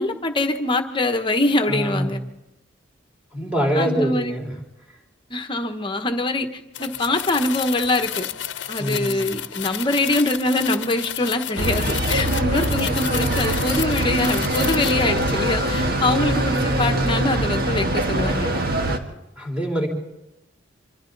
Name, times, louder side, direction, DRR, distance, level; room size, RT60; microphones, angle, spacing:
voice 1, 0.0-2.2 3.8-4.4 5.3-8.3 8.7-18.5, left 2 dB, 25° left, 6 dB, 1.2 m, -24 dB
voice 2, 1.7-2.2 3.3-4.5 8.8-9.3 16.0-16.5 19.4-19.9, equal, 5° right, -1 dB, 3.9 m, -25 dB
sound 1, 6.7-15.1, left 10 dB, 65° left, 0.9 m, -31 dB
sound 2, 11.6-19.0, right 1 dB, 55° right, 1.6 m, -23 dB
26.5 x 25.5 x 4.0 m, 0.97 s
head